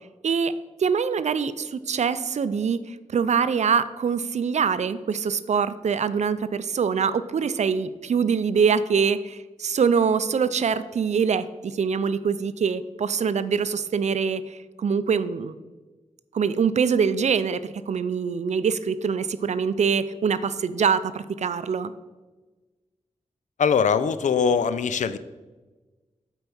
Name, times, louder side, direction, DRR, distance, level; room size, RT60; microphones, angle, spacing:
voice 1, 0.8-15.5 16.3-21.9, right 6 dB, 70° right, 14 dB, 0.4 m, -24 dB
voice 2, 23.6-25.2, left 6 dB, 85° left, 14 dB, 0.4 m, -22 dB
7.9 x 4.6 x 5.4 m, 1.2 s
wide cardioid pair, 80°, 12 cm